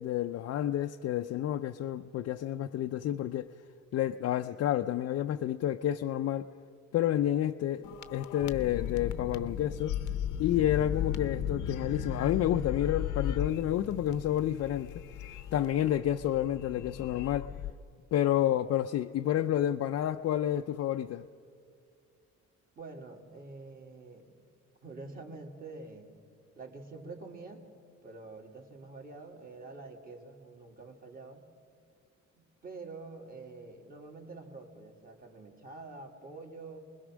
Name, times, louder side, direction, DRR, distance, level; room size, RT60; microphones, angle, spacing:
voice 1, 0.0-3.5 3.9-6.5 6.9-10.0 10.4-15.0 15.5-17.5 18.1-21.3, left 11 dB, 55° left, 0.5 m, -30 dB
sound 1, 7.8-17.7, left 9 dB, 85° left, 0.8 m, -36 dB
voice 2, 22.8-24.3 24.8-26.1 26.6-27.7 28.0-31.5 32.4-36.8, right 3 dB, 30° right, 2.4 m, -47 dB
28.0 x 21.0 x 6.2 m
cardioid pair, 160°, 29 cm